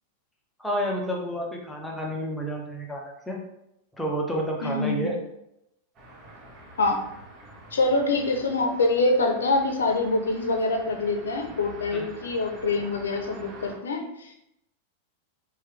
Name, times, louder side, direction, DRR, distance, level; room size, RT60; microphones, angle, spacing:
voice 1, 0.6-3.4 4.0-5.1 11.9-12.1, equal, 5° left, -2 dB, 0.7 m, -30 dB
voice 2, 4.6-5.1 6.8-7.0 7.7-14.3, left 2 dB, 80° left, 3 dB, 0.6 m, -25 dB
sound 1, 5.9-13.7, right 1 dB, 30° right, 1.3 m, -46 dB
3.0 x 2.3 x 3.3 m, 0.82 s
hypercardioid pair, 100°, 0 cm